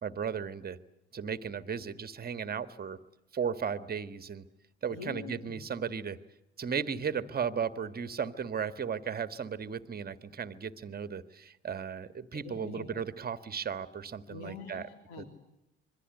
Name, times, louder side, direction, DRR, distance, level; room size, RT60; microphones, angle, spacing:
voice 1, 0.0-0.8 1.1-3.0 3.3-4.4 4.8-6.2 6.6-14.9 15.2-15.3, right 7 dB, 25° right, 13 dB, 1.6 m, -35 dB
voice 2, 4.9-5.6 12.4-13.0 14.3-15.3, left 5 dB, 65° left, 6 dB, 3.3 m, -44 dB
26.0 x 23.0 x 7.9 m, 0.89 s
figure-of-eight pair, 65°, 36 cm